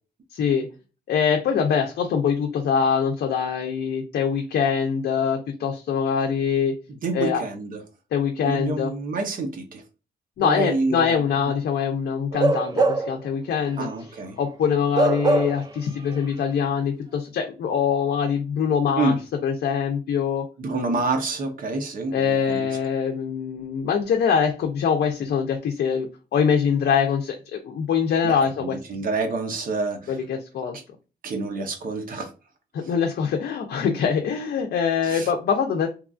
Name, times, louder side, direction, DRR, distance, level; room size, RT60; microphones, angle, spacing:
voice 1, 0.3-0.7 1.1-6.7 7.1-7.4 8.1-8.9 10.4-13.9 14.4-19.2 19.4-20.5 22.1-29.0 30.1-30.8 32.7-35.9, left 7 dB, 80° left, 0.5 m, -23 dB
voice 2, 6.9-7.8 8.4-9.8 10.4-11.6 13.8-14.4 19.0-19.2 20.6-22.7 28.2-30.1 30.7-30.8 31.2-32.3 35.0-35.3, right 3 dB, 55° right, 0.7 m, -28 dB
Bark / Livestock farm animals working animals, 12.3-13.2 13.6-13.8 14.9-15.8 16.1-16.2, right 2 dB, 25° right, 0.3 m, -22 dB
3.0 x 2.3 x 2.4 m
wide cardioid pair, 130°, 17 cm